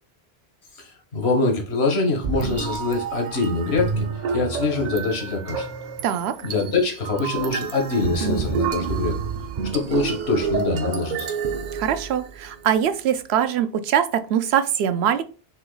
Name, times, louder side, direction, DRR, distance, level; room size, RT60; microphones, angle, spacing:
voice 1, 0.7-4.1 4.3-5.7 6.4-9.3 9.7-11.3, left 3 dB, 90° left, 2 dB, 1.4 m, -24 dB
sound 1, 2.2-12.5, right 5 dB, 55° right, 0.5 m, -28 dB
voice 2, 6.0-6.4 11.7-15.2, right 9 dB, 85° right, 11 dB, 0.8 m, -22 dB
4.4 x 2.9 x 3.9 m, 0.35 s
omnidirectional pair, 1.0 m